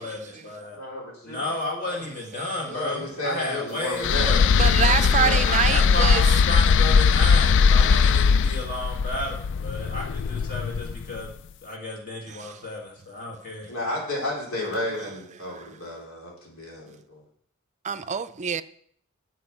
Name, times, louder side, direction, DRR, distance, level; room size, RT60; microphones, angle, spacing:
voice 1, 0.0-0.8 1.2-4.4 5.4-13.7, left 2 dB, 40° left, 1.8 m, -32 dB
voice 2, 0.7-1.4 2.7-5.4 13.7-17.2, left 1 dB, 80° left, 4.2 m, -32 dB
sound 1, 4.0-11.2, left 6 dB, 60° left, 0.3 m, -20 dB
voice 3, 4.5-6.2 12.3-12.5 15.5-15.6 17.8-18.6, right 7 dB, 35° right, 0.5 m, -26 dB
9.6 x 7.8 x 6.0 m
head